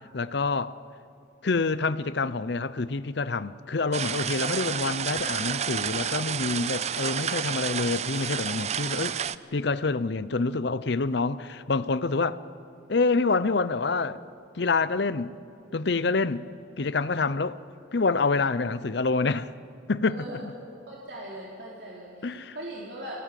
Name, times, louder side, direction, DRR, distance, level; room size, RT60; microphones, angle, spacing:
voice 1, 0.1-0.8 1.4-9.2 9.5-12.4 12.9-14.2 14.5-15.3 15.7-16.4 16.8-17.6 17.9-19.5 19.9-20.5 22.2-22.6, left 3 dB, 60° left, 0.6 m, -27 dB
sound 1, 3.9-9.4, right 8 dB, 35° right, 0.4 m, -30 dB
voice 2, 20.0-20.5 20.9-23.1, right 1 dB, 60° right, 3.4 m, -40 dB
24.5 x 17.5 x 8.4 m
head